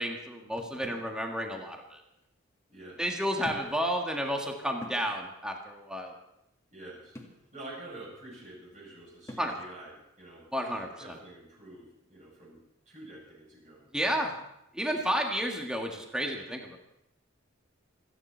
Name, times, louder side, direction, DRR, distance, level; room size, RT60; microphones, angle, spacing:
voice 1, 0.0-2.0 3.0-6.1 9.4-9.5 10.5-11.1 13.9-14.3 14.7-16.8, equal, 5° right, 1 dB, 1.7 m, -31 dB
sound 1, 0.6-1.1 2.2-2.3 3.4-3.9 4.3-4.4 4.8-5.1 7.2-7.4 9.3-9.6, left 1 dB, 15° left, 2.1 m, -45 dB
voice 2, 2.7-3.5 6.7-7.2 7.5-12.6 12.9-13.9 14.9-15.1, right 1 dB, 40° right, -5 dB, 7.9 m, -48 dB
27.5 x 10.0 x 4.5 m, 0.83 s
head